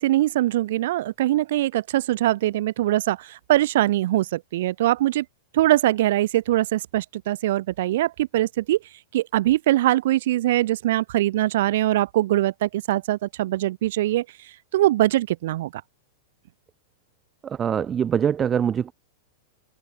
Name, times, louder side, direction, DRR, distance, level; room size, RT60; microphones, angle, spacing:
voice 1, 0.0-5.3 5.5-8.8 9.1-14.2 14.7-15.8, right 15 dB, 65° right, 1.9 m, -22 dB
voice 2, 17.6-18.9, right 8 dB, 20° right, 2.7 m, -23 dB
open air
supercardioid pair, 140°, 0 cm